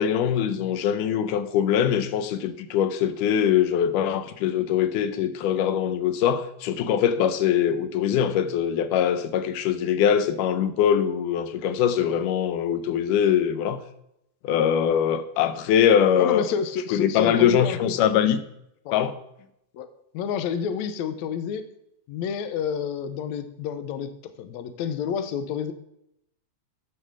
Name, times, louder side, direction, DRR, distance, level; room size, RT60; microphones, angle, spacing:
voice 1, 0.0-13.8 14.4-16.4 16.9-18.4 18.9-19.2, left 9 dB, 90° left, 2.3 m, -22 dB
voice 2, 16.2-18.0 18.9-19.0 19.7-19.9 20.1-21.7 22.1-25.7, left 7 dB, 75° left, 2.0 m, -29 dB
11.0 x 6.6 x 6.2 m
omnidirectional pair, 3.5 m